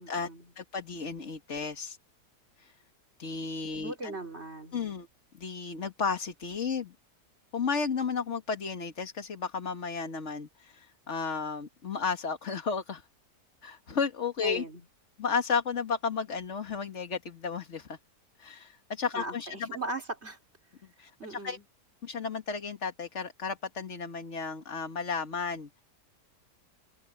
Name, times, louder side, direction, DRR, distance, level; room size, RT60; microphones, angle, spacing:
voice 1, 0.0-0.5 3.7-4.8 14.4-14.8 19.1-20.4 21.2-21.6, right 2 dB, 40° right, 4.0 m, -38 dB
voice 2, 0.6-2.0 2.6-2.7 3.2-4.2 4.7-5.1 5.4-6.9 7.5-13.0 13.6-14.6 15.2-18.0 18.4-19.7 21.0-21.6 22.0-25.7, left 5 dB, 45° left, 1.9 m, -33 dB
omnidirectional pair, 1.8 m